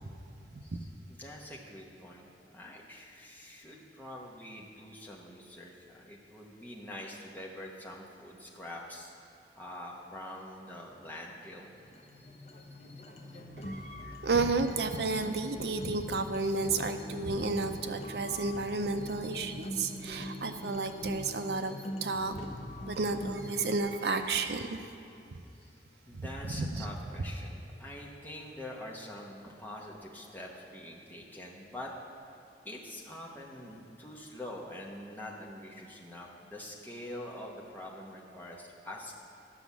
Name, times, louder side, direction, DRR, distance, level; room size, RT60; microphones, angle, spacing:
voice 1, 0.6-9.1 9.6-11.7 15.1-15.2 25.5-25.8 26.1-31.9 32.6-39.1, left 1 dB, 10° left, -3 dB, 1.1 m, -45 dB
sound 1, 11.7-23.8, left 1 dB, 40° left, 0.7 m, -43 dB
voice 2, 13.6-22.3 22.8-24.8 26.1-27.0, right 3 dB, 65° right, 7 dB, 0.6 m, -32 dB
10.0 x 6.0 x 7.1 m, 2.8 s
head